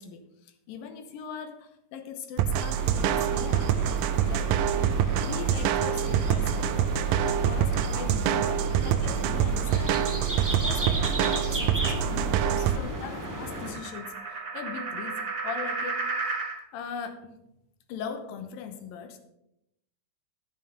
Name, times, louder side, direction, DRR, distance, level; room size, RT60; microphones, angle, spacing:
voice 1, 0.0-3.8 4.2-6.8 7.1-10.2 10.5-16.0 16.7-17.4 17.9-19.2, left 6 dB, 85° left, 8 dB, 2.7 m, -40 dB
sound 1, 2.4-12.8, right 9 dB, 80° right, 2.1 m, -26 dB
sound 2, 2.7-13.7, right 1 dB, 10° right, 0.9 m, -35 dB
sound 3, 10.3-16.6, right 4 dB, 35° right, 1.9 m, -36 dB
11.5 x 7.6 x 5.2 m, 0.83 s
omnidirectional pair, 3.9 m